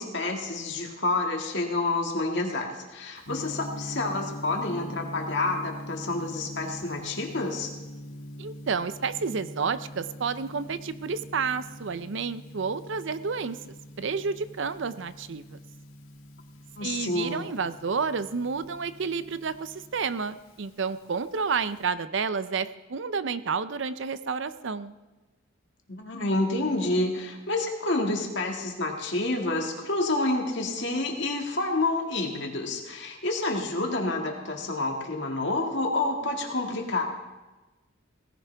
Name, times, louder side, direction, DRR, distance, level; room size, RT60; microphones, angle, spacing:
voice 1, 0.0-7.7 16.8-17.5 25.9-37.0, left 2 dB, 55° left, 1 dB, 2.0 m, -28 dB
Gong, 3.2-21.8, left 1 dB, 85° left, 2.1 m, -43 dB
voice 2, 8.4-13.6 14.0-15.6 16.8-25.0, right 5 dB, 60° right, 13 dB, 0.5 m, -30 dB
18.0 x 15.0 x 3.4 m, 1.2 s
head